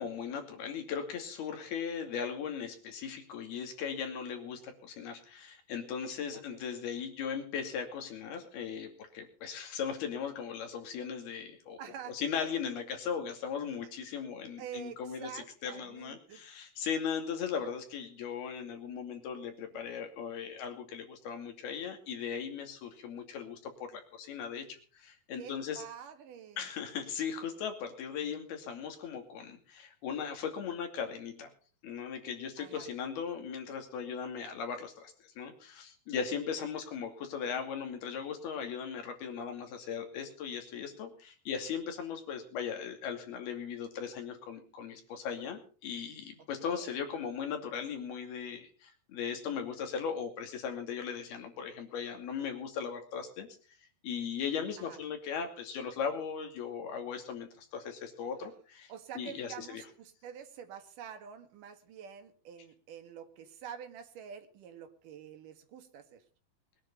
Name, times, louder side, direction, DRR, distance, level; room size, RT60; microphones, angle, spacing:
voice 1, 0.0-11.8 12.1-24.7 24.9-25.8 26.6-31.5 31.8-53.5 54.0-59.8, left 7 dB, 90° left, 5 dB, 4.6 m, -38 dB
voice 2, 6.3-6.6 11.8-12.2 14.6-16.4 25.4-26.7 32.6-32.9 46.4-46.9 54.8-55.0 58.9-66.2, right 8 dB, 65° right, 7 dB, 3.2 m, -47 dB
21.5 x 10.5 x 5.4 m, 0.40 s
omnidirectional pair, 4.3 m